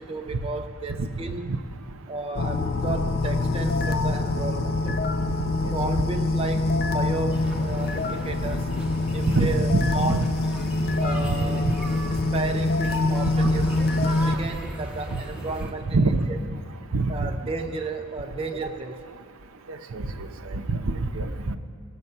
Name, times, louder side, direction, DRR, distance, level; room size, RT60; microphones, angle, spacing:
voice 1, 0.0-1.5 2.1-5.0 5.7-8.8 9.1-10.2 11.0-11.6 12.3-13.7 14.3-16.0 16.3-16.4 17.1-19.1, right 3 dB, 25° right, 4 dB, 0.4 m, -33 dB
sound 1, 2.3-14.4, left 2 dB, 45° left, 0.4 m, -25 dB
sound 2, 7.3-15.7, right 1 dB, 5° right, 1.0 m, -36 dB
voice 2, 9.3-10.2 11.6-11.7 13.4-13.5 15.1-15.2 15.9-16.3 16.9-17.3 19.9-20.1 20.5-21.6, right 2 dB, 65° right, 8 dB, 0.7 m, -24 dB
18.0 x 6.8 x 5.4 m, 2.4 s
head